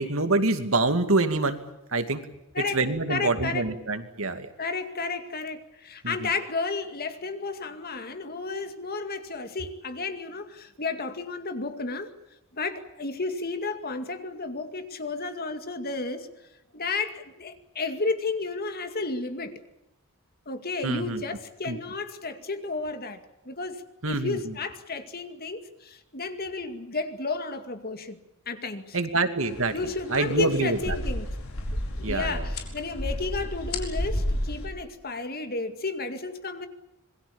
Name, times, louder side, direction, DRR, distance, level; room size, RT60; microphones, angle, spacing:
voice 1, 0.0-1.6 1.9-2.2 2.7-4.5 6.0-6.3 20.8-21.2 21.7-21.8 24.0-24.5 28.9-29.7 30.1-31.0 32.0-32.5, right 2 dB, 65° right, 9 dB, 2.5 m, -26 dB
voice 2, 3.1-3.7 4.6-12.1 12.5-16.3 16.7-19.6 20.5-28.2 28.5-29.0 29.7-31.3 32.0-36.7, left 3 dB, 45° left, 8 dB, 2.3 m, -32 dB
sound 1, 29.4-34.7, left 1 dB, 75° left, 4.7 m, -32 dB
26.5 x 22.0 x 7.2 m, 0.92 s
head